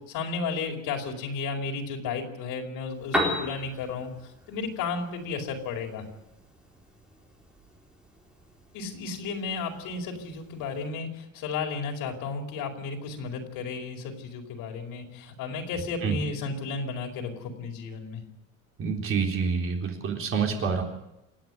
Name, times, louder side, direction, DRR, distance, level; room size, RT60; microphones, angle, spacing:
voice 1, 0.0-6.0 8.7-18.2, left 4 dB, 80° left, 1 dB, 4.9 m, -33 dB
Piano, 2.9-10.9, equal, 5° right, 3.9 m, -37 dB
voice 2, 18.8-20.8, right 5 dB, 40° right, 2 dB, 3.9 m, -27 dB
28.0 x 9.6 x 9.6 m, 0.92 s
cardioid pair, 170°, 33 cm